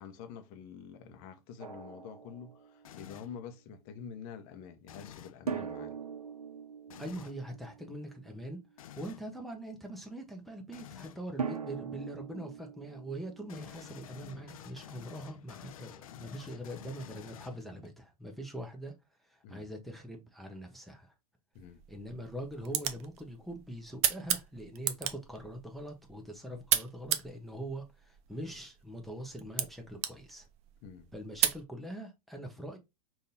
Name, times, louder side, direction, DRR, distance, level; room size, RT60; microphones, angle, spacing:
voice 1, 0.0-6.0 19.4-19.7 21.5-21.8 30.8-31.1, left 7 dB, 40° left, 0.8 m, -47 dB
Drum, 1.6-3.0 5.5-8.4 11.4-14.2, right 6 dB, 85° right, 0.5 m, -41 dB
sound 1, 2.9-3.4 4.8-5.4 6.9-7.4 8.8-9.3 10.7-11.2 13.5-17.9, left 10 dB, 65° left, 0.5 m, -50 dB
voice 2, 7.0-8.6 9.0-18.9 19.3-21.1 21.9-30.5 31.1-32.8, right 1 dB, ahead, 0.8 m, -43 dB
sound 2, 21.6-31.6, right 11 dB, 35° right, 0.6 m, -36 dB
5.2 x 2.7 x 2.6 m
figure-of-eight pair, 95°, 19 cm